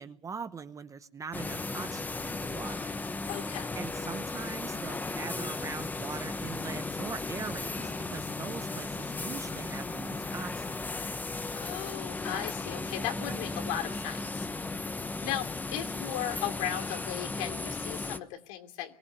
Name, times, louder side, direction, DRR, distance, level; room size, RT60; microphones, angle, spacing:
voice 1, 0.0-3.3 3.8-10.9, right 5 dB, 15° right, 11 dB, 0.9 m, -42 dB
sound 1, 1.3-18.2, left 3 dB, 10° left, 1.0 m, -36 dB
voice 2, 3.3-3.8 11.5-14.5 15.2-18.9, left 11 dB, 65° left, 5 dB, 2.9 m, -36 dB
23.5 x 17.0 x 9.8 m, 0.67 s
supercardioid pair, 135°, 18 cm